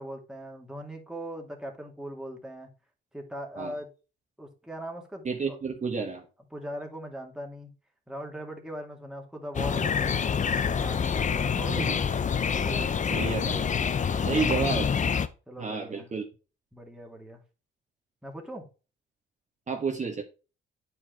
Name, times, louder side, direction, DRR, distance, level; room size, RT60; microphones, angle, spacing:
voice 1, 0.0-2.7 3.1-3.9 4.4-5.6 6.5-7.7 8.1-10.3 10.6-11.8 12.4-13.3 14.3-14.7 15.5-16.2 16.7-17.4 18.2-18.7, right 1 dB, 5° right, 1 dB, 2.4 m, -40 dB
voice 2, 5.2-6.2 11.7-12.0 12.4-12.5 13.0-13.7 14.2-14.9 15.6-16.2 19.7-20.2, right 5 dB, 35° right, 2 dB, 1.6 m, -31 dB
sound 1, 9.5-15.3, left 6 dB, 40° left, 0.7 m, -27 dB
8.7 x 4.9 x 4.5 m, 0.32 s
cardioid pair, 90°, 20 cm